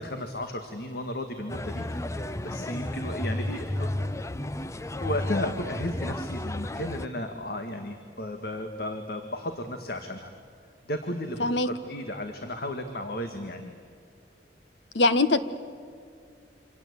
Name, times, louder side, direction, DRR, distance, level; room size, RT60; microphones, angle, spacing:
voice 1, 0.0-2.0 2.4-3.9 5.0-10.3 10.9-13.8, left 1 dB, 60° left, 6 dB, 1.9 m, -34 dB
sound 1, 1.5-7.1, left 1 dB, 15° left, 0.7 m, -32 dB
voice 2, 14.9-15.4, left 2 dB, 90° left, 12 dB, 1.4 m, -21 dB
27.5 x 26.5 x 8.3 m, 2.2 s
head